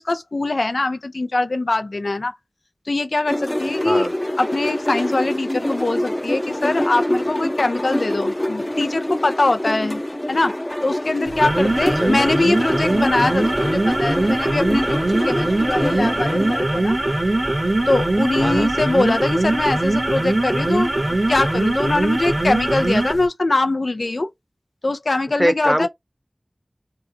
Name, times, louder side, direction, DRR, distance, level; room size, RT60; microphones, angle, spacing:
voice 1, 0.0-2.4 2.9-4.1 4.4-10.0 10.3-10.6 10.8-15.0 15.3-17.0 17.9-20.9 21.3-24.3 24.8-25.9, left 2 dB, 75° left, 0.3 m, -22 dB
sound 1, 3.3-16.6, left 1 dB, 25° left, 0.6 m, -25 dB
sound 2, 11.3-23.3, right 2 dB, 45° right, 0.9 m, -21 dB
voice 2, 25.4-25.9, equal, 15° right, 0.7 m, -21 dB
2.8 x 2.1 x 3.7 m
wide cardioid pair, 45°, 0 cm